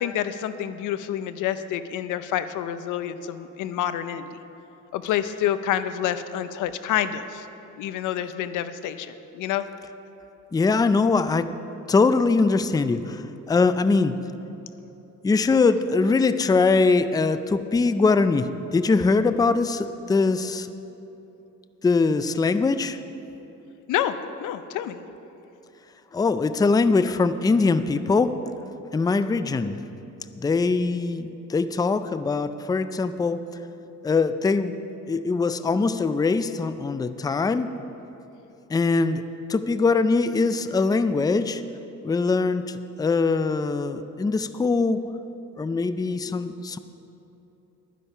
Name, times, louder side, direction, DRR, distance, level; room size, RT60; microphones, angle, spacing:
voice 1, 0.0-4.3 4.9-7.5 7.8-9.7 23.9-25.0, left 10 dB, 85° left, 12 dB, 0.6 m, -28 dB
voice 2, 10.5-11.5 11.9-14.2 15.2-20.7 21.8-23.0 26.1-28.3 28.9-29.8 30.4-33.4 34.0-34.7 35.1-37.7 38.7-39.2 39.5-41.6 42.0-45.0 45.6-46.8, left 4 dB, 15° left, 12 dB, 0.4 m, -22 dB
11.5 x 10.0 x 5.5 m, 3.0 s
cardioid pair, 90°, 30 cm